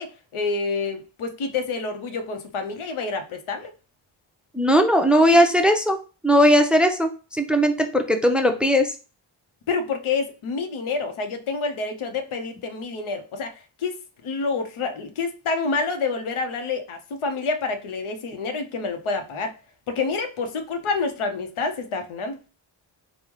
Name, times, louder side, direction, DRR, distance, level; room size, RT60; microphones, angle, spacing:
voice 1, 0.0-3.7 9.7-19.5 19.9-22.4, left 4 dB, 90° left, 6 dB, 0.7 m, -28 dB
voice 2, 4.5-6.0 6.2-8.9, equal, ahead, 5 dB, 0.5 m, -18 dB
3.5 x 2.1 x 3.0 m, 0.33 s
cardioid pair, 50°, 48 cm